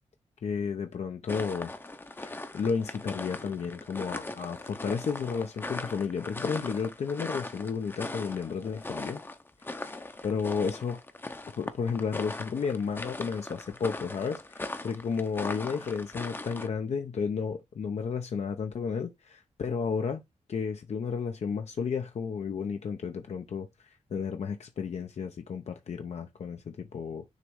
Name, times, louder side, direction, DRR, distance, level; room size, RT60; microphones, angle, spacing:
voice 1, 0.4-1.7 2.2-9.2 9.8-9.9 10.2-11.0 11.6-20.2 20.5-23.7 24.1-27.2, left 6 dB, 65° left, 0.7 m, -32 dB
sound 1, 1.3-16.7, left 2 dB, 15° left, 0.7 m, -40 dB
6.6 x 3.1 x 4.7 m
wide cardioid pair, 120°, 12 cm